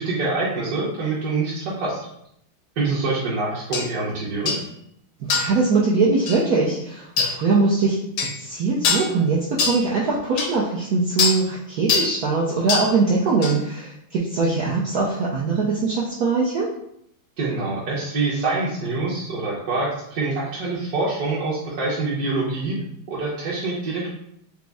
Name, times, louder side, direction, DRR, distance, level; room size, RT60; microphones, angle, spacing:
voice 1, 0.0-2.0 2.8-4.6 17.4-22.8 23.1-24.1, right 3 dB, 55° right, -7 dB, 1.2 m, -25 dB
sound 1, 3.7-3.9 4.5-4.7 5.3-5.6 6.3-6.4 7.2-7.4 8.2-8.4 8.8-9.1 9.6-9.8 10.4-10.5 11.2-11.4 11.9-12.1 12.7-12.9 13.4-13.6, left 5 dB, 75° left, 1.4 m, -22 dB
voice 2, 5.3-8.0 8.4-16.7, right 4 dB, 80° right, -4 dB, 0.8 m, -22 dB
5.0 x 2.0 x 3.4 m, 0.74 s
omnidirectional pair, 2.3 m